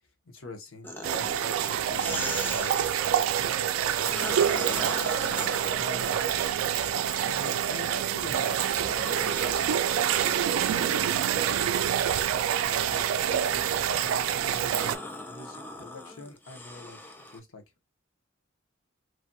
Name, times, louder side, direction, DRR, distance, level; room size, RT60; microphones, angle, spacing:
voice 1, 0.2-4.0 4.3-4.9 5.6-6.4 7.2-8.5 9.1-9.8 10.1-11.1 11.4-11.9 12.3-14.8 15.3-17.6, left 3 dB, 90° left, 0.9 m, -46 dB
sound 1, 0.8-3.1 3.7-7.8 8.2-17.4, left 2 dB, 10° left, 0.4 m, -41 dB
sound 2, 1.0-15.0, right 9 dB, 90° right, 0.3 m, -27 dB
sound 3, 4.1-14.2, left 1 dB, 50° left, 1.0 m, -53 dB
3.2 x 2.2 x 2.5 m
head